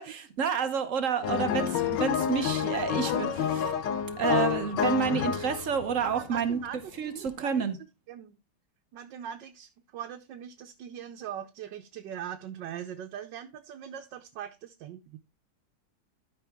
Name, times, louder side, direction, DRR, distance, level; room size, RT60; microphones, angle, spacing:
voice 1, 0.0-3.7 4.2-6.6 7.0-7.8, right 7 dB, 50° right, 1.3 m, -29 dB
sound 1, 1.2-6.6 7.3-7.4, left 8 dB, 85° left, 1.5 m, -29 dB
voice 2, 6.0-6.8 7.1-7.6 8.1-8.4 8.9-15.2, right 9 dB, 90° right, 1.4 m, -41 dB
12.0 x 5.4 x 3.5 m
omnidirectional pair, 1.9 m